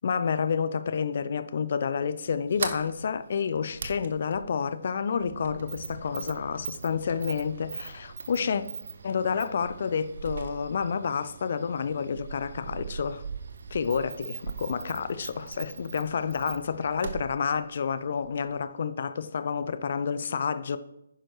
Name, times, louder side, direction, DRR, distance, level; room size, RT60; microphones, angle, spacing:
voice 1, 0.0-8.6 9.0-13.2 13.7-20.8, left 6 dB, 50° left, 0.5 m, -29 dB
Sliding door, 2.3-18.6, right 5 dB, 55° right, 0.8 m, -41 dB
10.5 x 10.0 x 3.2 m
figure-of-eight pair, 140°, 0 cm